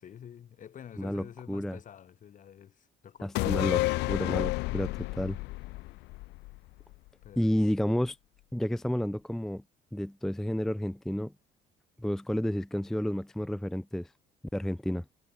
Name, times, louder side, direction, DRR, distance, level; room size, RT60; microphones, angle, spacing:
voice 1, 0.0-3.4 7.2-7.7, left 9 dB, 50° left, 6.6 m, -49 dB
voice 2, 1.0-1.8 3.2-5.4 7.4-8.2 8.5-9.6 9.9-11.3 12.0-14.1 14.5-15.0, equal, ahead, 0.4 m, -31 dB
sound 1, 3.4-6.9 7.3-7.4, left 22 dB, 85° left, 0.4 m, -31 dB
cardioid pair, 110°, 17 cm